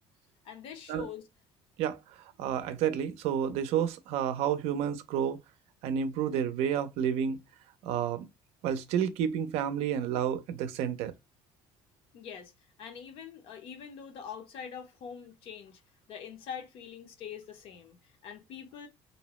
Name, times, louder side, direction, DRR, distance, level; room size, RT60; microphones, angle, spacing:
voice 1, 0.4-1.2 12.1-12.5 12.8-15.8 16.1-18.0 18.2-18.9, left 7 dB, 55° left, 0.6 m, -44 dB
voice 2, 1.8-5.4 5.8-7.4 7.8-8.3 8.6-11.1, right 8 dB, 70° right, 0.4 m, -30 dB
2.6 x 2.0 x 2.9 m
cardioid pair, 170°, 11 cm